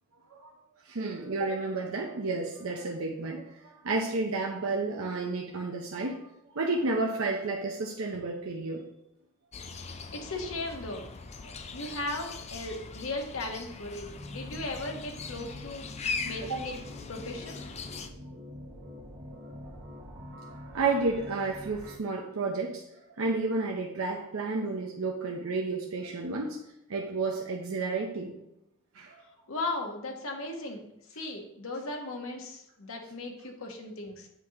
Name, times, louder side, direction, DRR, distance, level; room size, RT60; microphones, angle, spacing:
voice 1, 0.8-6.2 6.5-8.9 11.4-11.5 16.4-16.6 20.5-22.8 23.2-26.6 26.9-28.4 28.9-29.3, right 3 dB, 75° right, 0 dB, 0.7 m, -31 dB
sound 1, 9.5-18.1, left 4 dB, 30° left, 0.4 m, -40 dB
voice 2, 9.9-11.1 11.7-15.9 16.2-16.8 17.1-17.6 29.5-34.3, left 2 dB, 70° left, 2 dB, 1.1 m, -37 dB
sound 2, 14.0-22.0, left 1 dB, 50° right, 1.4 m, -45 dB
8.3 x 2.9 x 5.1 m, 0.79 s
head